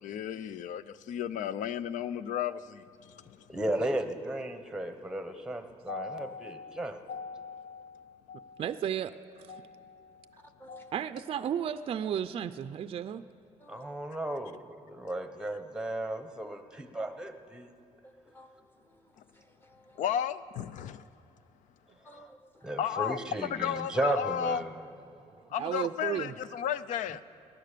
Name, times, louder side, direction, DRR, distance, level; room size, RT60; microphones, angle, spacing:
voice 1, 0.0-3.4 5.9-8.6 9.5-10.9 20.0-21.1 22.8-24.6 25.5-27.2, left 9 dB, 75° left, 16 dB, 0.5 m, -35 dB
voice 2, 3.5-7.0 13.7-17.7 22.6-24.8, right 1 dB, 5° right, 8 dB, 1.0 m, -34 dB
voice 3, 8.6-9.6 10.9-13.3 21.9-22.0 25.4-26.3, right 9 dB, 45° right, 12 dB, 0.4 m, -34 dB
voice 4, 10.6-10.9 13.6-13.9 18.0-20.0 22.0-22.8, equal, 15° left, 6 dB, 1.2 m, -56 dB
18.5 x 10.5 x 6.8 m, 2.7 s
cardioid pair, 130°, 13 cm